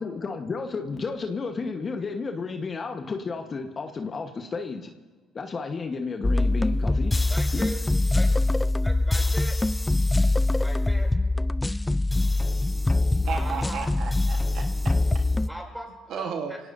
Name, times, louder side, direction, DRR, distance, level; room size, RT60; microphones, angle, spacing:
voice 1, 0.0-4.9 5.3-7.7, left 4 dB, 40° left, 5 dB, 1.2 m, -32 dB
sound 1, 6.2-15.5, left 2 dB, 15° left, 0.4 m, -23 dB
voice 2, 7.3-7.8 8.1-8.3 8.8-9.6 10.5-11.3 13.2-13.8 15.5-16.6, equal, ahead, 0 dB, 5.8 m, -39 dB
voice 3, 13.3-14.9 16.1-16.5, right 7 dB, 65° right, 4 dB, 1.3 m, -34 dB
24.5 x 17.5 x 2.7 m, 1.3 s
supercardioid pair, 70°, 0 cm